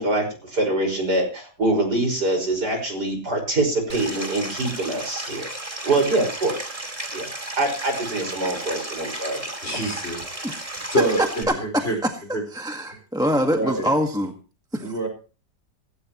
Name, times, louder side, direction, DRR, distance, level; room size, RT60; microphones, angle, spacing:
voice 1, 0.0-5.5 5.8-6.7 7.1-7.3 7.6-9.4, right 2 dB, 75° right, 3 dB, 6.1 m, -24 dB
Stream, 3.9-11.4, right 1 dB, 20° right, 2.7 m, -34 dB
voice 2, 9.6-10.5 10.9-12.0 12.3-12.4 12.9-13.0 13.5-13.9 14.8-15.1, right 1 dB, 40° left, 3 dB, 5.1 m, -26 dB
voice 3, 12.5-14.3 14.7-14.9, equal, ahead, 3 dB, 1.5 m, -24 dB
16.5 x 16.0 x 3.1 m, 0.35 s
omnidirectional pair, 1.8 m